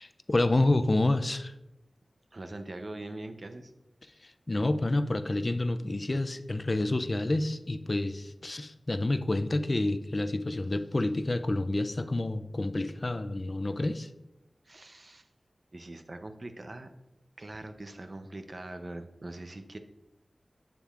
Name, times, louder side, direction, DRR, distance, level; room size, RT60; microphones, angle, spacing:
voice 1, 0.0-1.5 4.2-14.1, left 2 dB, 40° left, 10 dB, 0.3 m, -28 dB
voice 2, 2.3-3.7 14.7-15.3 15.7-16.9 17.4-19.8, right 2 dB, 50° right, 8 dB, 0.5 m, -42 dB
7.3 x 7.0 x 2.4 m, 0.93 s
wide cardioid pair, 65°, 0 cm